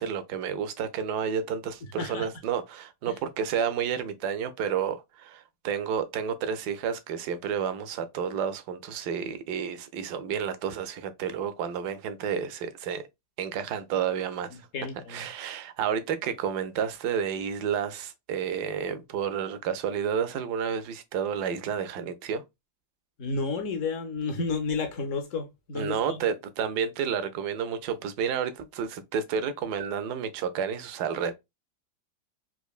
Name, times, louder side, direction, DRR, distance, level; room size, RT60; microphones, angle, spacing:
voice 1, 0.0-13.1 13.4-14.6 15.1-22.4 25.7-31.3, right 7 dB, 70° right, 1.0 m, -30 dB
voice 2, 2.0-2.3 3.1-3.2 14.7-15.3 23.2-26.2, left 4 dB, 65° left, 0.8 m, -31 dB
4.3 x 2.5 x 2.3 m
omnidirectional pair, 2.0 m